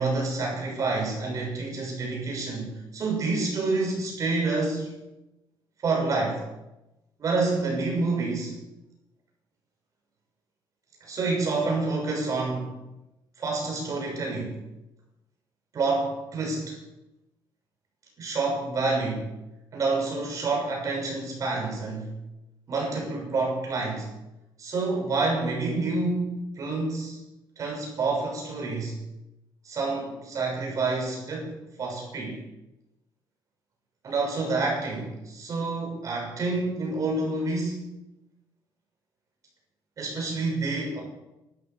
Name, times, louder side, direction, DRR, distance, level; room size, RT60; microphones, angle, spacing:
voice 1, 0.0-4.9 5.8-6.4 7.2-8.5 11.0-12.7 13.4-14.6 15.7-16.8 18.2-19.3 19.7-22.1 22.7-24.1 24.6-27.2 27.6-29.0 29.6-32.4 34.0-37.9 40.0-41.0, right 3 dB, 40° right, -1 dB, 6.5 m, -28 dB
13.0 x 12.5 x 7.6 m, 0.94 s
cardioid pair, 165°, 9 cm